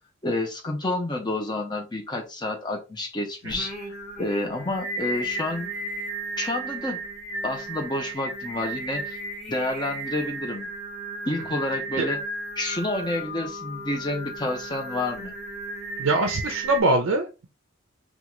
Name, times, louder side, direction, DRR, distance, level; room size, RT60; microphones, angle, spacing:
voice 1, 0.2-5.7 6.4-7.0 7.4-9.2 9.5-10.7 11.3-12.2 12.6-15.3, left 2 dB, 20° left, 2 dB, 0.7 m, -29 dB
Singing, 3.5-16.8, right 2 dB, ahead, 1.0 m, -34 dB
voice 2, 16.0-17.5, right 2 dB, 75° right, 4 dB, 0.5 m, -23 dB
3.7 x 2.4 x 3.0 m, 0.29 s
head